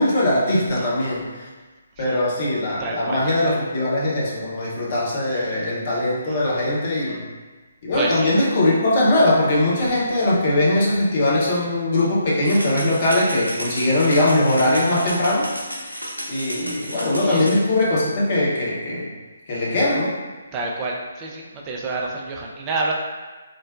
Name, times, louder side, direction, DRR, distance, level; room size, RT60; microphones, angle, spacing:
voice 1, 0.0-1.5 2.0-7.3 7.8-15.5 15.8-16.0 16.3-19.1 19.5-20.1, left 1 dB, 35° left, -5 dB, 0.7 m, -20 dB
voice 2, 2.8-3.2 6.3-6.4 7.1-7.2 7.9-8.3 17.2-17.5 20.5-22.9, right 3 dB, 20° right, -2 dB, 0.4 m, -28 dB
sound 1, 12.4-17.6, equal, 85° right, 0.5 m, -32 dB
3.8 x 2.1 x 2.4 m, 1.3 s
figure-of-eight pair, 140°, 0 cm